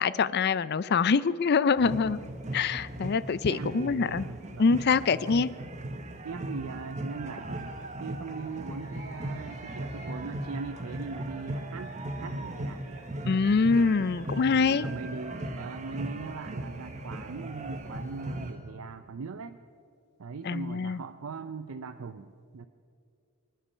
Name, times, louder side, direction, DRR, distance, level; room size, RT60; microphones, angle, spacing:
voice 1, 0.0-2.2 2.5-4.3 4.6-5.5 13.2-14.9 20.4-21.0, left 5 dB, 50° left, 17 dB, 0.4 m, -25 dB
sound 1, 1.8-18.5, right 1 dB, 35° right, 1.0 m, -38 dB
sound 2, 3.5-18.6, equal, 15° right, 4.2 m, -53 dB
voice 2, 3.5-4.9 6.2-13.1 13.7-14.0 14.3-19.6 20.2-22.7, right 4 dB, 80° right, 9 dB, 0.5 m, -40 dB
24.5 x 10.0 x 5.6 m, 2.4 s
head